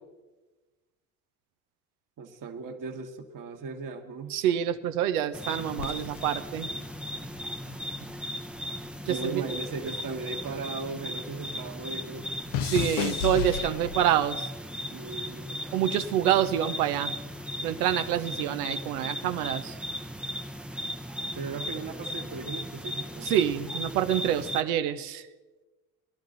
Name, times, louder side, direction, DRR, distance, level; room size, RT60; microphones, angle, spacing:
voice 1, 2.2-4.4 9.0-12.3 14.9-15.6 21.3-23.3, right 4 dB, 45° right, 3 dB, 1.5 m, -37 dB
voice 2, 4.3-6.7 9.1-9.4 12.6-14.5 15.7-17.1 17.6-19.8 23.2-25.3, right 11 dB, 90° right, 10 dB, 0.8 m, -27 dB
sound 1, 5.3-24.6, equal, ahead, 0.6 m, -37 dB
sound 2, 5.8-8.3 8.6-11.2 11.5-14.3 15.0-15.4, left 9 dB, 85° left, 0.9 m, -35 dB
18.5 x 11.5 x 3.9 m, 1.2 s
hypercardioid pair, 65°, 43 cm